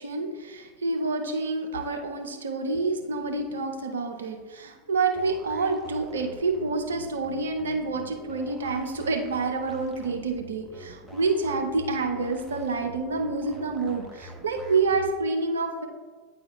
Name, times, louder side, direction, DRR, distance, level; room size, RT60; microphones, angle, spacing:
voice 1, 0.0-15.9, right 3 dB, 70° right, 4 dB, 0.6 m, -28 dB
sound 1, 5.1-15.1, equal, 5° right, 1.0 m, -46 dB
9.2 x 4.4 x 2.3 m, 1.4 s
figure-of-eight pair, 80°, 0 cm